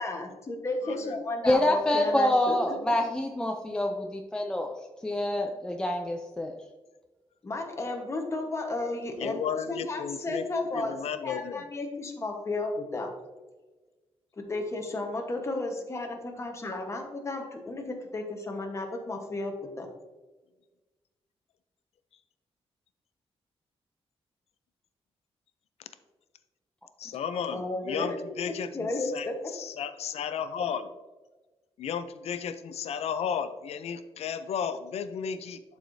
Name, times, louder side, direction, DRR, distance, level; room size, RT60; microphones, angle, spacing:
voice 1, 0.0-2.8 7.4-9.4 9.7-10.9 11.2-13.1 14.4-19.9 27.5-28.2 28.5-29.3, left 2 dB, 25° left, 3 dB, 1.1 m, -33 dB
voice 2, 0.8-1.2 9.2-10.5 10.7-11.6 27.0-29.3 29.5-30.9 31.8-35.6, left 7 dB, 85° left, 11 dB, 0.5 m, -34 dB
voice 3, 1.4-4.7 5.0-6.5 27.0-27.1, left 1 dB, 10° left, 2 dB, 0.4 m, -26 dB
11.0 x 4.8 x 2.6 m, 1.2 s
wide cardioid pair, 160°, 11 cm